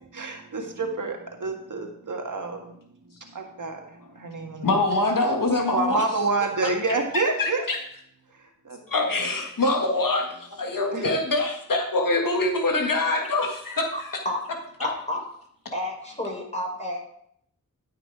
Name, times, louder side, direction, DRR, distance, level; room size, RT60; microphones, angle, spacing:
voice 1, 0.0-2.9 3.2-4.8 5.7-7.6 8.3-8.8 10.9-11.1, right 3 dB, 65° right, 3 dB, 1.7 m, -29 dB
voice 2, 4.6-6.0 7.1-7.8 8.9-10.2 10.6-13.9, left 2 dB, 70° left, 2 dB, 1.8 m, -24 dB
voice 3, 13.9-14.4 14.8-15.2 15.7-17.0, left 1 dB, 20° left, 0 dB, 3.9 m, -30 dB
12.5 x 5.8 x 4.9 m, 0.69 s
cardioid pair, 50°, 34 cm